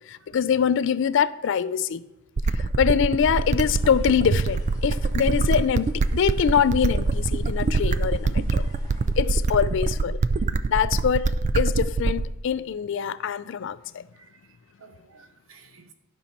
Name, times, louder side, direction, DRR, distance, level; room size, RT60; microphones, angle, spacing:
voice 1, 0.1-2.0 2.8-8.7 9.2-10.2 10.7-14.0, left 7 dB, 65° left, 0.4 m, -24 dB
sound 1, 2.4-12.4, right 3 dB, 35° right, 0.3 m, -24 dB
voice 2, 2.8-3.2 9.2-9.5 14.1-15.9, right 2 dB, 80° right, 1.0 m, -51 dB
Bird, 3.1-9.3, equal, 15° left, 1.6 m, -50 dB
12.0 x 5.5 x 4.2 m
head